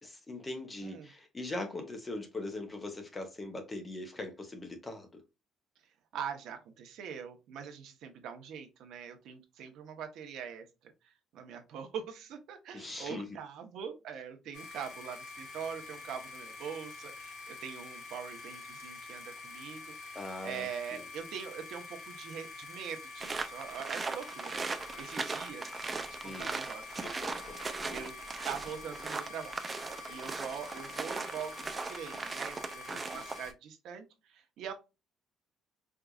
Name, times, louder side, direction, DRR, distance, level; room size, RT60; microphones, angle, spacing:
voice 1, 0.0-5.1 12.7-13.3 20.1-21.0 26.2-26.6 27.0-28.0 32.9-33.2, left 2 dB, 15° left, 0.8 m, -41 dB
voice 2, 6.1-10.7 11.3-25.7 26.0-26.9 27.9-28.1 28.5-29.6 30.1-34.7, right 7 dB, 65° right, 0.8 m, -43 dB
sound 1, 14.5-33.5, left 3 dB, 65° left, 1.6 m, -47 dB
sound 2, 23.2-33.5, right 4 dB, 20° right, 0.4 m, -39 dB
4.5 x 2.5 x 2.3 m
cardioid pair, 170°, 0 cm